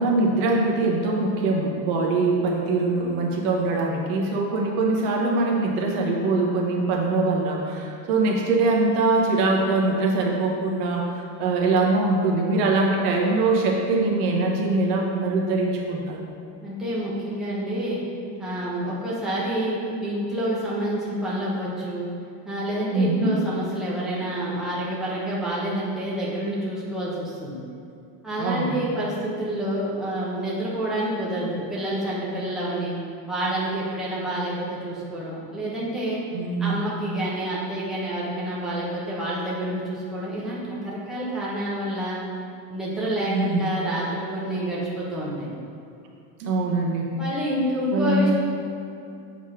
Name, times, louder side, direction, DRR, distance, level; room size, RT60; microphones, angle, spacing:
voice 1, 0.0-11.1 11.4-16.3 22.9-23.3 28.4-28.8 36.3-36.8 43.3-43.7 46.4-47.1 47.9-48.3, right 3 dB, 85° right, -1 dB, 1.3 m, -23 dB
voice 2, 16.6-18.0 18.4-22.1 22.5-27.6 28.2-32.9 33.3-36.2 36.6-42.2 42.7-45.5 47.2-48.3, right 1 dB, ahead, -8 dB, 1.2 m, -28 dB
7.2 x 4.0 x 4.9 m, 2.6 s
cardioid pair, 160°, 44 cm